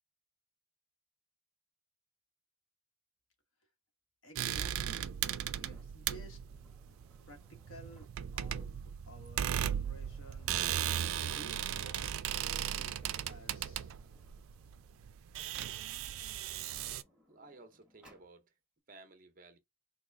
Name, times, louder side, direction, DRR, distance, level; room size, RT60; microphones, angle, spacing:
voice 1, 4.2-6.4 7.3-8.7 9.1-13.9 14.6-14.7, right 1 dB, 80° left, 1.2 m, -55 dB
sound 1, 4.4-17.0, right 10 dB, 85° right, 0.4 m, -37 dB
Sliding door, 5.6-8.4 9.4-9.5 9.8-11.6 12.7-15.3 16.0-18.3, equal, 5° right, 1.1 m, -66 dB
voice 2, 17.0-18.5 18.9-19.6, right 3 dB, 45° right, 0.8 m, -56 dB
3.6 x 2.3 x 3.3 m
head